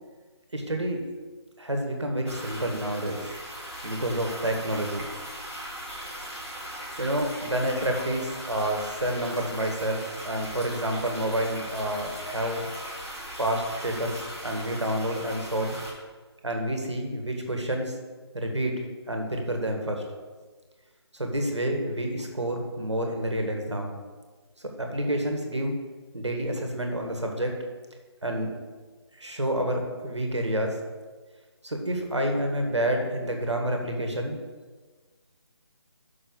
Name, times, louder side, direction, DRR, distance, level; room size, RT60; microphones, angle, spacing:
voice 1, 0.5-1.0 1.6-3.3 3.8-5.1 7.0-12.7 13.4-15.8 16.4-18.0 18.3-18.7 19.1-20.0 21.1-24.0 24.6-25.8 26.1-27.5 28.2-28.5 29.2-30.8 31.6-34.4, right 1 dB, 85° right, 3 dB, 1.7 m, -29 dB
sound 1, 2.3-15.9, equal, 5° left, 2.2 m, -39 dB
6.2 x 5.6 x 6.4 m, 1.4 s
figure-of-eight pair, 160°, 14 cm